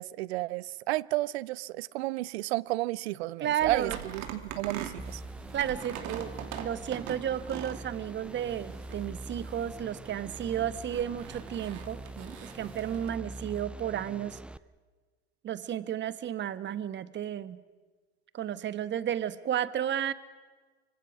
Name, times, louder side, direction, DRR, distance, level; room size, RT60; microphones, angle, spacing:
voice 1, 0.0-5.2, right 19 dB, 70° right, 0.7 m, -32 dB
voice 2, 3.4-4.0 5.5-14.4 15.4-17.6 18.3-20.1, right 10 dB, 35° right, 1.3 m, -33 dB
sound 1, 3.6-13.1, right 9 dB, 55° right, 2.8 m, -43 dB
sound 2, 5.0-14.6, right 1 dB, 5° right, 0.6 m, -44 dB
25.0 x 25.0 x 6.2 m
hypercardioid pair, 90°, 33 cm